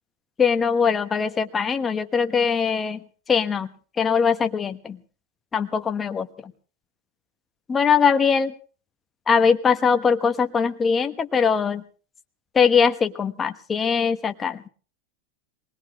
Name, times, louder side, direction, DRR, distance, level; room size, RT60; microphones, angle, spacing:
voice 1, 0.4-3.0 3.3-3.7 4.0-5.0 5.5-6.3 7.7-8.5 9.3-11.8 12.5-14.7, left 6 dB, 15° left, 8 dB, 1.2 m, -21 dB
23.0 x 20.0 x 3.1 m, 0.38 s
supercardioid pair, 145°, 0 cm